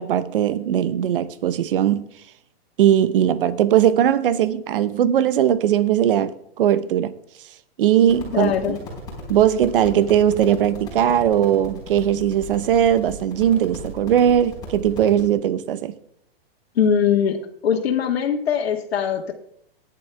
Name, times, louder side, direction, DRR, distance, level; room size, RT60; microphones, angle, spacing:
voice 1, 0.0-2.1 2.8-7.1 7.8-8.8 9.3-15.9, right 10 dB, 60° right, 1.0 m, -19 dB
sound 1, 8.0-15.2, left 2 dB, 15° left, 4.2 m, -37 dB
voice 2, 8.3-8.8 16.8-17.4 17.6-19.3, left 8 dB, 90° left, 1.7 m, -21 dB
16.0 x 10.5 x 3.4 m
hypercardioid pair, 170°, 30 cm